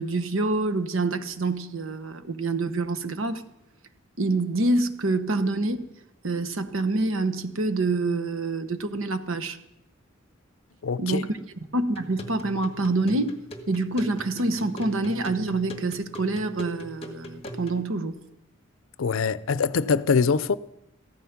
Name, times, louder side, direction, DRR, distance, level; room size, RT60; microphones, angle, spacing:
voice 1, 0.0-3.4 4.2-5.9 6.2-9.6 11.0-11.3 11.7-13.3 13.7-18.1, right 2 dB, 80° right, 1.0 m, -26 dB
voice 2, 10.8-11.2 19.0-20.6, left 5 dB, 80° left, 0.5 m, -23 dB
sound 1, 12.0-17.8, equal, 30° left, 1.7 m, -41 dB
15.0 x 13.0 x 5.9 m
head